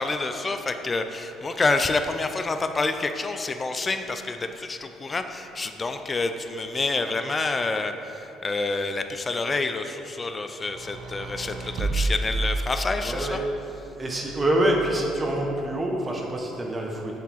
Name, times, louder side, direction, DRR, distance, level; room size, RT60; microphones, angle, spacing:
voice 1, 0.0-13.4, left 3 dB, 25° left, 7 dB, 0.5 m, -28 dB
sound 1, 10.6-13.3 14.2-15.2, right 2 dB, 55° right, 0.6 m, -30 dB
voice 2, 13.0-13.4 14.0-17.2, right 1 dB, 25° right, 0 dB, 1.2 m, -26 dB
7.3 x 3.5 x 5.8 m, 2.8 s
supercardioid pair, 80°, 0 cm